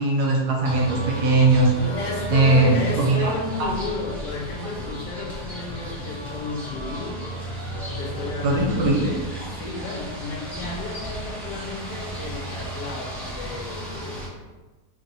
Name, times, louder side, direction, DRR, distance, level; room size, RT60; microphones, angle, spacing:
voice 1, 0.0-1.7 2.3-3.3 3.6-3.7 8.4-9.1, right 2 dB, 75° right, -1 dB, 1.1 m, -19 dB
sound 1, 0.6-14.3, right 1 dB, ahead, 0.6 m, -34 dB
voice 2, 1.7-7.2 8.0-14.3, left 3 dB, 85° left, -1 dB, 1.3 m, -32 dB
2.9 x 2.7 x 3.9 m, 1.2 s
omnidirectional pair, 1.8 m